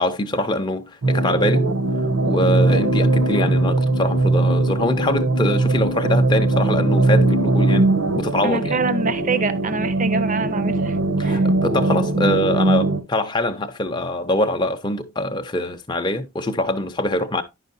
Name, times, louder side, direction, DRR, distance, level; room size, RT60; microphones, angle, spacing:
voice 1, 0.0-1.7 2.0-8.8 11.2-17.4, left 1 dB, 20° left, 0.5 m, -24 dB
sound 1, 1.0-13.0, right 2 dB, 70° right, 0.9 m, -20 dB
voice 2, 8.4-11.5, right 3 dB, 35° right, 0.6 m, -25 dB
10.0 x 5.6 x 2.6 m
head